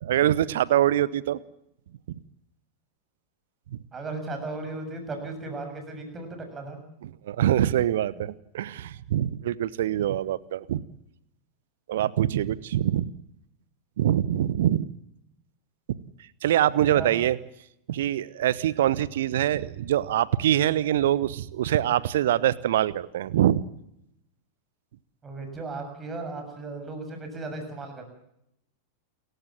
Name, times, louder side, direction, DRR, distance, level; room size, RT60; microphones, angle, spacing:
voice 1, 0.0-1.4 3.7-3.8 7.0-10.8 11.9-13.1 14.0-14.9 16.4-17.4 17.9-23.6, right 12 dB, 60° right, 20 dB, 1.0 m, -24 dB
voice 2, 3.9-6.8 16.9-17.1 25.2-28.0, right 3 dB, 20° right, 5 dB, 7.1 m, -36 dB
29.0 x 15.0 x 7.4 m, 0.79 s
figure-of-eight pair, 90°, 0 cm